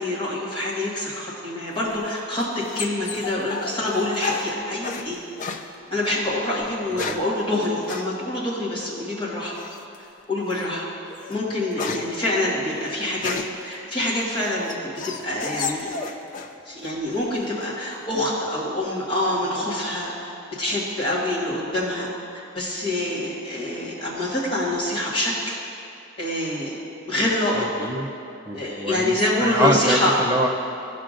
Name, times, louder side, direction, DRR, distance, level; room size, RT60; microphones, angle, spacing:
voice 1, 0.0-5.2 5.9-9.5 10.3-10.9 11.3-13.3 13.6-15.9 16.6-25.6 26.2-26.8 27.1-27.7 28.5-30.1, left 1 dB, 25° left, -7 dB, 1.6 m, -26 dB
sound 1, 1.8-5.1 5.4-5.7 6.6-7.3 7.9-8.1 9.6-10.0 10.5-10.7 11.1-13.7 14.2-16.6 16.8-17.4, left 5 dB, 40° left, 0.4 m, -32 dB
voice 2, 27.5-28.1 28.4-30.5, right 1 dB, 15° right, 0 dB, 0.6 m, -25 dB
14.5 x 5.8 x 2.5 m, 2.7 s
head